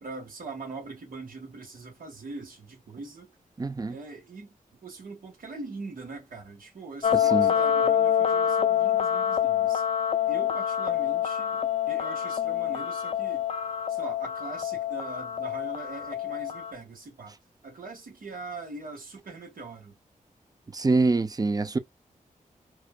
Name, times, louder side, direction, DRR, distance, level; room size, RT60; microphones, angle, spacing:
voice 1, 0.0-3.3 3.9-4.6 4.8-9.8 10.3-13.5 13.9-17.4 17.6-20.0, right 3 dB, 80° right, 1.7 m, -42 dB
voice 2, 3.6-4.0 7.1-7.5 20.7-21.8, right 3 dB, 25° right, 0.6 m, -25 dB
sound 1, 7.0-16.7, left 9 dB, 45° left, 0.5 m, -26 dB
4.7 x 2.3 x 2.3 m
wide cardioid pair, 95°, 14 cm